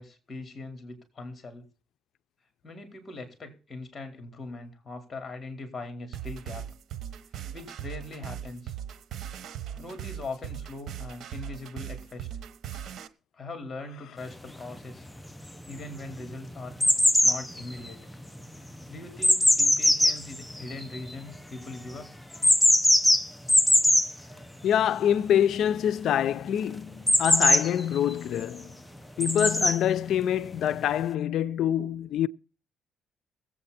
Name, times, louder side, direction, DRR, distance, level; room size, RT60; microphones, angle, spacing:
voice 1, 0.0-1.6 2.6-6.7 7.5-8.7 9.7-12.3 13.3-15.1 15.7-16.7 17.2-18.0 18.9-22.2, left 2 dB, 35° left, 4.3 m, -41 dB
sound 1, 6.1-13.1, right 10 dB, 70° right, 1.1 m, -39 dB
sound 2, 14.5-14.6 15.2-15.8 16.1-21.4 22.3-24.1 27.1-28.1 29.2-29.8 30.7-30.8, left 1 dB, 5° left, 0.9 m, -21 dB
voice 2, 24.6-28.8 29.2-32.3, left 10 dB, 75° left, 0.5 m, -25 dB
21.0 x 8.4 x 4.3 m
cardioid pair, 90°, 0 cm